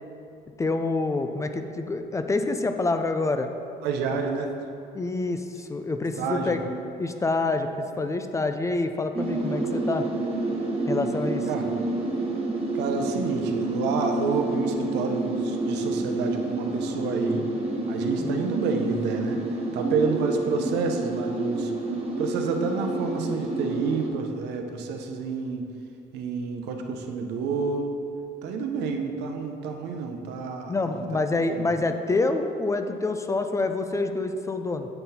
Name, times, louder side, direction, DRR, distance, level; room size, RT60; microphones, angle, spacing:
voice 1, 0.6-3.5 4.9-6.6 7.0-7.7 8.0-10.1 10.9-11.5 18.2-18.4 30.7-34.9, left 3 dB, 20° left, 7 dB, 0.3 m, -27 dB
voice 2, 3.8-4.5 6.2-6.7 11.5-11.6 12.7-17.5 17.9-19.4 19.7-21.7 22.2-25.6 26.1-27.9 28.4-31.1 31.5-31.7, right 5 dB, 85° right, 4 dB, 0.7 m, -29 dB
sound 1, 9.1-24.1, right 2 dB, 35° right, 1.1 m, -29 dB
7.9 x 3.9 x 4.2 m, 2.6 s
cardioid pair, 110°, 17 cm